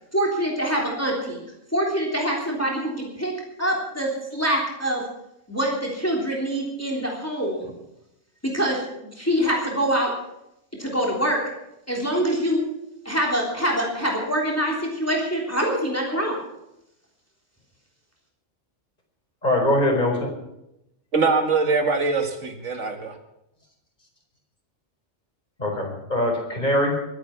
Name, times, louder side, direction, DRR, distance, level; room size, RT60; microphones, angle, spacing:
voice 1, 0.1-1.4 1.7-3.3 3.6-5.0 5.5-7.7 8.4-10.1 10.8-11.4 11.9-12.6 13.0-16.4, equal, 10° left, -2 dB, 3.4 m, -25 dB
voice 2, 19.4-20.3 25.6-26.9, left 1 dB, 40° left, 0 dB, 4.6 m, -22 dB
voice 3, 21.1-23.2, right 4 dB, 80° right, 4 dB, 2.3 m, -22 dB
22.5 x 9.6 x 6.0 m, 0.85 s
omnidirectional pair, 1.2 m